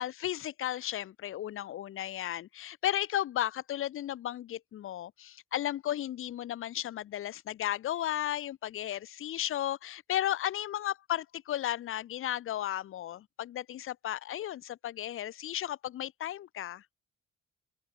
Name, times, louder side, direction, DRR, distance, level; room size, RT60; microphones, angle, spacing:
voice 1, 0.0-16.8, left 12 dB, 45° left, 0.5 m, -34 dB
open air
cardioid pair, 90°, 30 cm